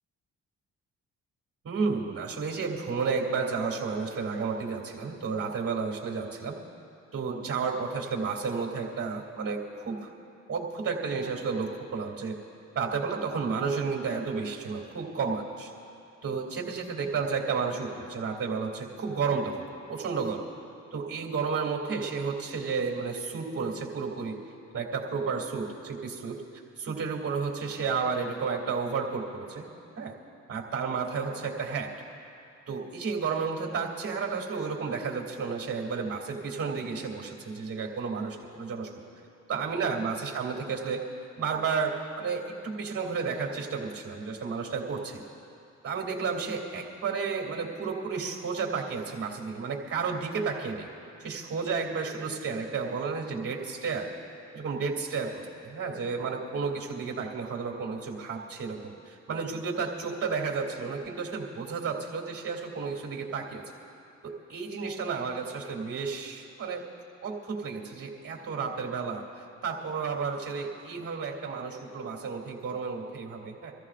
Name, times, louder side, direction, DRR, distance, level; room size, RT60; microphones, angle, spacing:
voice 1, 1.6-6.6 7.1-10.1 10.5-12.3 12.7-15.7 16.2-20.5 20.9-24.3 24.7-26.4 26.8-29.7 30.0-30.1 30.5-31.9 32.7-39.0 39.5-41.0 41.4-45.2 45.8-50.9 51.2-54.1 54.5-55.3 55.6-63.6 64.2-66.8 67.2-69.2 69.6-73.7, right 5 dB, 45° right, 1 dB, 2.7 m, -32 dB
26.0 x 14.0 x 2.5 m, 2.7 s
cardioid pair, 80°, 31 cm